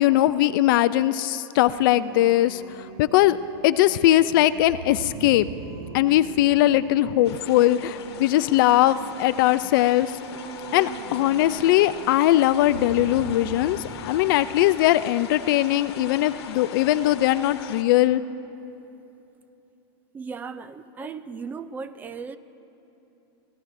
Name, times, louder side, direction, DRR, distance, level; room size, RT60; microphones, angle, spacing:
voice 1, 0.0-3.4 3.6-5.5 5.9-10.1 10.7-18.2, left 14 dB, 55° left, 14 dB, 0.4 m, -20 dB
Singing, 1.7-13.3, right 8 dB, 65° right, 1.0 m, -44 dB
sound 1, 4.5-7.5 12.5-15.7, right 5 dB, 35° right, 0.8 m, -40 dB
sound 2, 7.2-17.8, left 8 dB, 80° left, 1.2 m, -41 dB
voice 2, 20.1-22.4, right 5 dB, 15° right, 14 dB, 0.3 m, -36 dB
28.5 x 15.5 x 2.6 m, 2.9 s
supercardioid pair, 155°, 14 cm